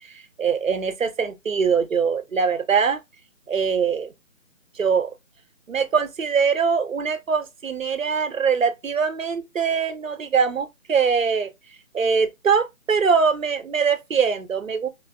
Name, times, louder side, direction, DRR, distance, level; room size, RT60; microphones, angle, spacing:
voice 1, 0.4-3.0 3.5-4.1 4.8-5.1 5.7-11.5 11.9-14.9, right 6 dB, 70° right, 0.9 m, -22 dB
3.3 x 3.3 x 2.3 m
figure-of-eight pair, 170°, 41 cm